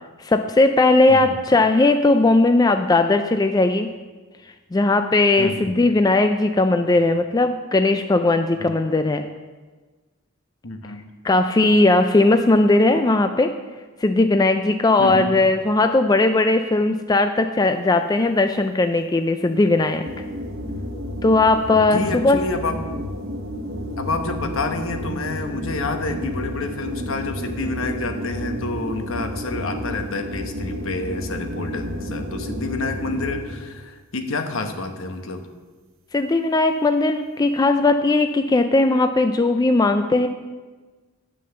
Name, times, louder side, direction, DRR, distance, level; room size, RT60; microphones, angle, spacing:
voice 1, 0.2-3.9 4.7-9.3 11.2-13.5 14.0-20.1 21.2-22.4 36.1-40.3, left 2 dB, 20° left, 7 dB, 0.3 m, -18 dB
voice 2, 1.1-1.4 5.4-5.7 8.6-8.8 10.6-11.0 15.0-15.4 21.8-22.8 24.0-35.4, left 3 dB, 65° left, 6 dB, 1.0 m, -28 dB
sound 1, 20.0-33.7, equal, 60° right, 1.3 m, -31 dB
9.7 x 6.2 x 6.8 m, 1.3 s
head